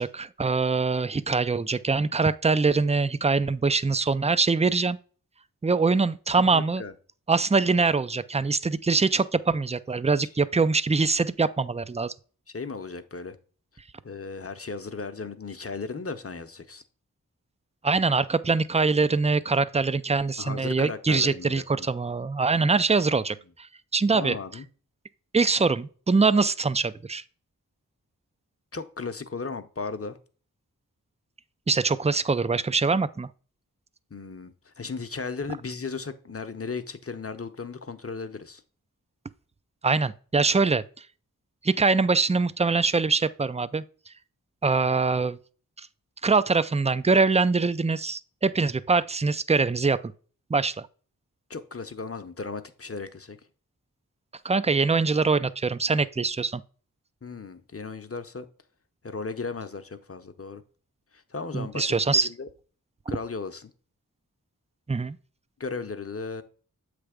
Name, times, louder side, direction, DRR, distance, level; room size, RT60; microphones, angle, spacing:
voice 1, 0.0-5.0 5.6-6.8 7.3-12.1 17.8-23.4 23.9-24.4 25.3-27.2 31.7-33.3 39.8-40.8 41.6-43.8 44.6-45.4 46.2-50.0 50.5-50.9 54.4-56.6 61.5-62.3 64.9-65.2, right 4 dB, 20° right, 0.4 m, -23 dB
voice 2, 6.5-6.9 10.2-10.3 12.5-13.4 14.0-16.8 20.4-21.9 24.1-24.6 28.7-30.2 34.1-38.6 51.5-53.4 57.2-58.5 59.0-60.6 61.1-61.9 62.2-62.5 63.1-63.7 65.6-66.4, left 4 dB, 40° left, 0.8 m, -36 dB
7.9 x 3.4 x 4.9 m
wide cardioid pair, 40°, 36 cm